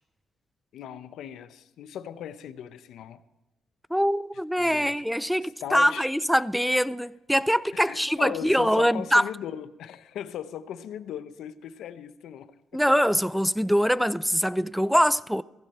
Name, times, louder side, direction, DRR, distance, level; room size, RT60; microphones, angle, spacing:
voice 1, 0.7-3.2 4.6-5.0 5.4-6.1 7.7-12.8, left 9 dB, 80° left, 0.8 m, -38 dB
voice 2, 3.9-9.2 12.7-15.4, equal, ahead, 0.5 m, -23 dB
16.0 x 15.0 x 4.4 m
cardioid pair, 90°, 0 cm